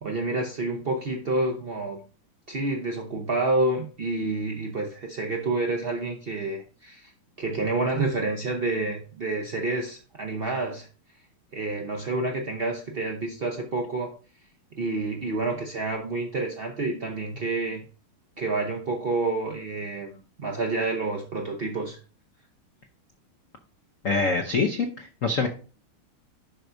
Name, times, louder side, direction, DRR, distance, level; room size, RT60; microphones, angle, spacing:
voice 1, 0.0-2.0 2.5-7.1 7.4-10.9 11.5-14.1 14.7-17.8 18.4-22.0, right 2 dB, 65° right, 2 dB, 0.5 m, -28 dB
voice 2, 24.0-25.5, left 4 dB, 70° left, 5 dB, 0.7 m, -25 dB
11.0 x 4.5 x 2.6 m, 0.37 s
omnidirectional pair, 2.4 m